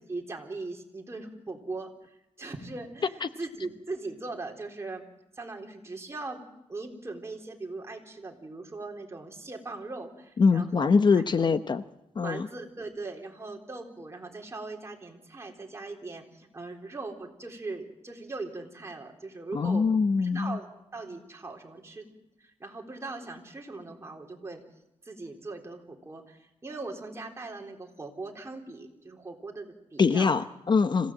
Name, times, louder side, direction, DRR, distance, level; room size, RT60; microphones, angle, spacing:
voice 1, 0.1-1.9 2.4-5.0 5.4-6.4 6.7-11.2 12.2-19.8 20.2-22.1 22.4-24.6 25.0-30.4, right 3 dB, 25° right, 1 dB, 3.8 m, -40 dB
voice 2, 10.4-11.8 12.2-12.5 19.5-20.6 30.0-31.1, left 5 dB, 45° left, 11 dB, 0.8 m, -23 dB
26.5 x 16.5 x 7.6 m, 0.89 s
wide cardioid pair, 120°, 11 cm